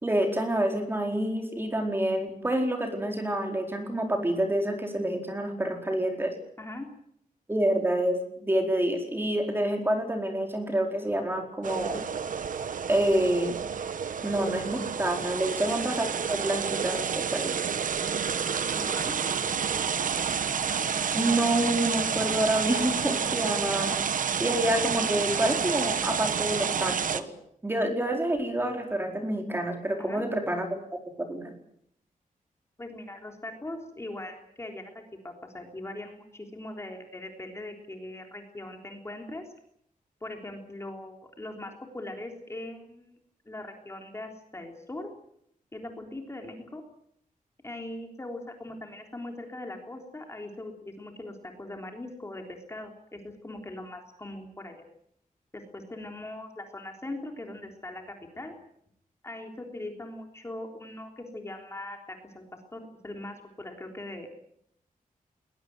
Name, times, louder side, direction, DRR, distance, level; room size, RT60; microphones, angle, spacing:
voice 1, 0.0-6.3 7.5-12.0 12.9-13.6 14.2-17.6 21.1-24.0 24.4-27.3 27.6-31.5, right 1 dB, 15° right, 4 dB, 4.5 m, -28 dB
sound 1, 11.6-27.2, right 7 dB, 65° right, 1.4 m, -29 dB
voice 2, 18.8-19.2 30.0-30.2 32.8-39.4 40.2-43.2 43.5-45.1 45.7-46.8 47.6-54.8 55.5-58.6 59.2-62.4 62.7-64.3, left 1 dB, 20° left, 3 dB, 3.5 m, -40 dB
21.0 x 21.0 x 9.4 m, 0.73 s
wide cardioid pair, 160°, 15 cm